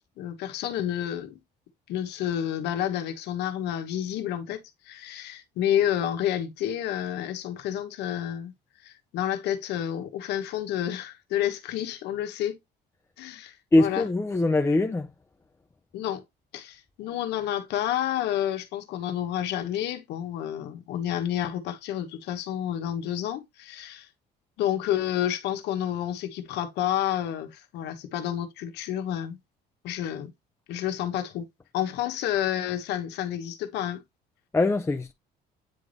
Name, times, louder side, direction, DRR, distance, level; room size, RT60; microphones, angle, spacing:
voice 1, 0.2-1.4 1.9-8.5 8.8-12.6 13.2-14.1 15.9-16.2 16.5-24.1 24.6-29.4 29.8-30.3 30.7-31.5 31.7-34.0, left 11 dB, 85° left, 1.3 m, -30 dB
voice 2, 13.7-15.1 34.5-35.1, left 2 dB, 15° left, 0.6 m, -22 dB
9.1 x 3.4 x 4.1 m
cardioid pair, 110°, 17 cm